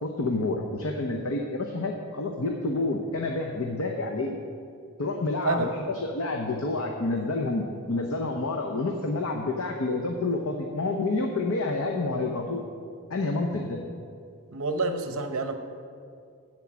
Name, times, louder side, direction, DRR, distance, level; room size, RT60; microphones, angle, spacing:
voice 1, 0.0-4.4 5.0-12.6 13.1-13.8, left 2 dB, 70° left, 2 dB, 0.8 m, -29 dB
voice 2, 14.5-15.6, right 3 dB, 70° right, 7 dB, 0.8 m, -28 dB
13.0 x 4.6 x 7.4 m, 2.3 s
head